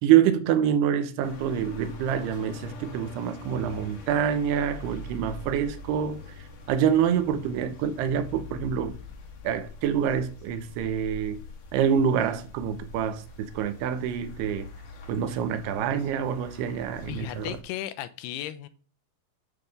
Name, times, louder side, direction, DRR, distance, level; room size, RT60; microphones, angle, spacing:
voice 1, 0.0-6.2 6.7-9.0 9.4-11.4 11.7-14.7 15.1-17.6, right 8 dB, 80° right, 2.7 m, -26 dB
sound 1, 1.2-17.6, left 2 dB, 65° left, 1.7 m, -44 dB
voice 2, 17.1-18.7, left 13 dB, 80° left, 2.5 m, -35 dB
8.9 x 3.6 x 6.6 m
omnidirectional pair, 4.8 m